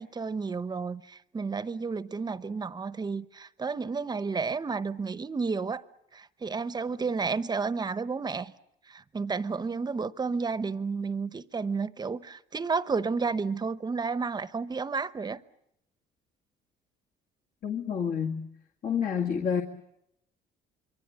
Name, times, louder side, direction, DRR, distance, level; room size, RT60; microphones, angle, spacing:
voice 1, 0.0-5.8 6.1-8.5 8.9-15.4, right 4 dB, 25° right, 0.9 m, -31 dB
voice 2, 17.6-18.4 18.8-19.6, left 7 dB, 55° left, 2.1 m, -28 dB
26.5 x 23.5 x 8.1 m
cardioid pair, 110°, 17 cm